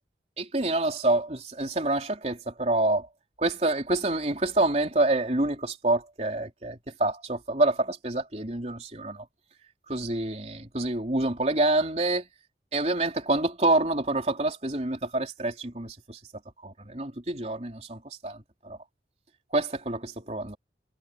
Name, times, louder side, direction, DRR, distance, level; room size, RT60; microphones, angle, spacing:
voice 1, 0.4-3.1 3.4-9.3 9.9-12.3 12.7-16.2 16.6-18.8 19.5-20.6, right 2 dB, 40° right, 3.6 m, -27 dB
head